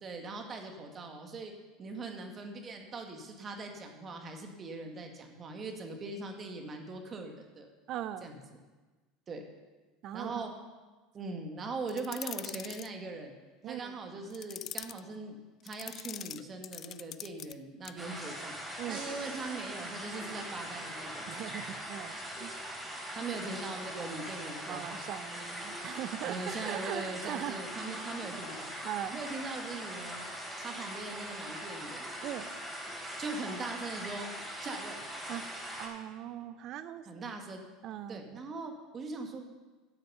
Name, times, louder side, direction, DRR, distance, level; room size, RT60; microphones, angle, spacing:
voice 1, 0.0-1.5 1.8-7.7 8.2-8.4 9.3-9.4 10.1-10.5 11.1-13.3 13.7-18.6 18.9-21.4 23.1-25.0 26.3-28.7 29.1-30.2 30.6-32.1 33.2-34.3 34.6-35.0 35.3-35.4 37.1-37.7 38.1-39.5, right 3 dB, 35° right, 3 dB, 2.0 m, -41 dB
voice 2, 7.9-8.3 10.0-10.5 13.6-14.0 18.8-19.0 21.3-22.5 24.7-27.6 28.2-28.3 28.8-29.2 32.2-32.5 35.3-37.2 37.8-38.3, right 11 dB, 55° right, 13 dB, 0.7 m, -40 dB
sound 1, 11.9-12.9 14.3-15.0 15.7-17.5 17.8-18.0, left 11 dB, 50° left, 0.3 m, -43 dB
sound 2, 18.0-35.9, equal, 15° right, 3.9 m, -41 dB
sound 3, 18.9-20.2, right 3 dB, 75° right, 4.0 m, -50 dB
12.5 x 7.9 x 5.6 m, 1.3 s
hypercardioid pair, 80°, 0 cm